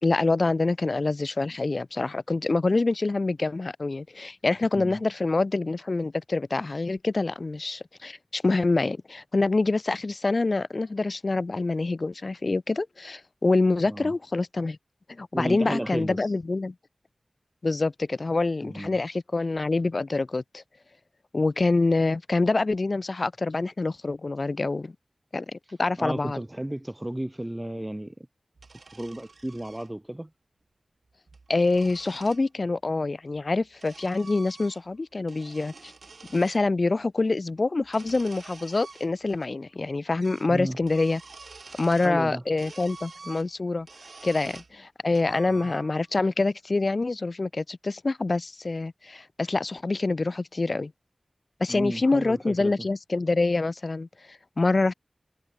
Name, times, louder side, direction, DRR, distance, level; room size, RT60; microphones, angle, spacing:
voice 1, 0.0-14.8 15.1-16.7 17.6-20.6 21.3-25.0 25.3-26.4 31.5-35.9 36.3-41.2 41.8-43.9 44.2-50.9 51.6-54.9, left 3 dB, 55° left, 2.2 m, -26 dB
voice 2, 15.3-16.3 18.6-19.0 26.0-28.1 28.9-30.3 40.5-40.8 41.7-42.4 45.5-45.7 51.7-52.7, right 1 dB, 15° right, 4.8 m, -33 dB
sound 1, 28.6-29.9 31.1-32.4 33.3-35.0 35.2-36.6 37.8-39.5 39.8-39.9 40.2-40.5 40.8-42.2 42.6-44.7 45.1-46.1, right 4 dB, 80° right, 6.7 m, -48 dB
wide cardioid pair, 65°, 0 cm